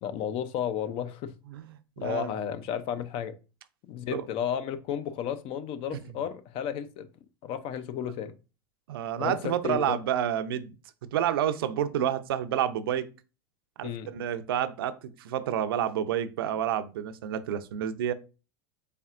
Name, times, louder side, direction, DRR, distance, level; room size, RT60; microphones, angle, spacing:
voice 1, 0.0-1.3 2.0-3.3 3.9-7.1 7.4-8.3 9.2-10.0 13.8-14.1, left 9 dB, 50° left, 0.5 m, -33 dB
voice 2, 1.5-2.3 4.1-4.2 5.9-6.0 8.9-10.7 11.1-13.1 13.8-18.1, right 10 dB, 80° right, 0.5 m, -29 dB
4.3 x 3.3 x 2.5 m
hypercardioid pair, 100°, 12 cm